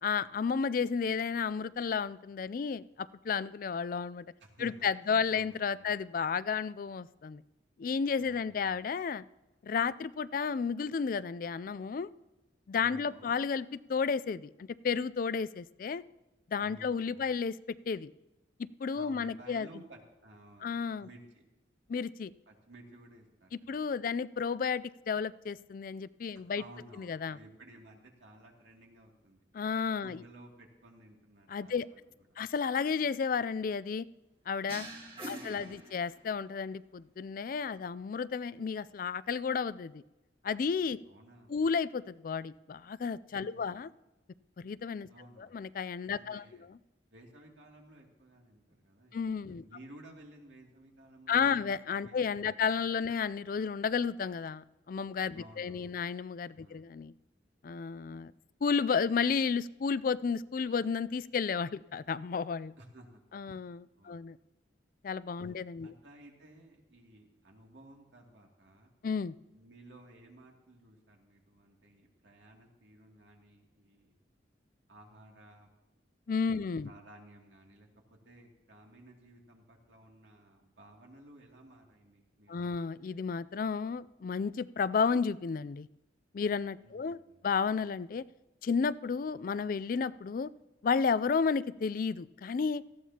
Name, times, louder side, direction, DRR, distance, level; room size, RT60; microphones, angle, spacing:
voice 1, 0.0-4.3 4.6-7.4 7.8-9.2 9.6-12.1 12.7-16.0 16.5-17.6 17.9-18.1 18.6-19.7 20.6-21.1 21.9-22.3 23.7-26.6 27.0-27.4 29.5-30.2 31.5-31.9 32.4-34.1 34.5-34.9 35.3-40.0 40.4-41.0 41.5-43.9 44.6-45.1 45.4-46.4 49.1-49.6 51.3-57.1 57.6-58.3 58.6-62.7 63.3-64.4 65.0-65.9 69.0-69.3 76.3-76.9 82.5-85.9 86.3-87.2 87.4-88.3 88.6-90.5 90.8-92.8, left 5 dB, 50° left, 17 dB, 0.3 m, -32 dB
voice 2, 4.4-4.7 5.0-5.9 8.2-8.8 12.8-13.4 16.6-17.3 18.9-21.5 22.5-23.8 26.3-29.4 30.0-32.4 35.1-35.9 41.0-41.6 43.4-43.8 45.1-45.6 46.1-46.7 47.1-51.7 52.0-52.9 55.3-56.0 56.6-56.9 62.8-63.2 63.5-63.6 64.0-64.2 65.4-68.9 69.5-74.1 74.9-75.7 76.5-82.7 86.8-87.4, right 1 dB, 75° right, 0 dB, 2.5 m, -56 dB
sound 1, 34.7-36.5, right 1 dB, 30° right, 2.3 m, -44 dB
18.5 x 14.5 x 2.9 m, 1.0 s
head